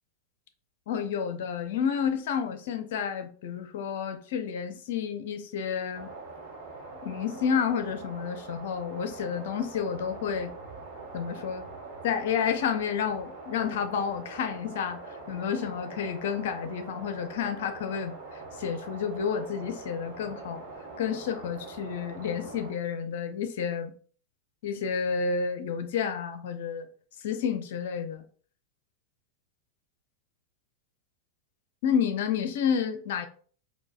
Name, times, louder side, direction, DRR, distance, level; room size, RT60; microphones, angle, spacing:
voice 1, 0.9-6.1 7.0-10.5 11.1-11.7 12.0-18.2 18.6-20.6 21.0-23.9 24.6-26.9 27.2-28.2 31.8-33.3, left 7 dB, 55° left, 0.5 m, -30 dB
sound 1, 5.9-22.7, right 3 dB, 50° right, 1.2 m, -43 dB
4.6 x 2.3 x 2.4 m
figure-of-eight pair, 90°, 0 cm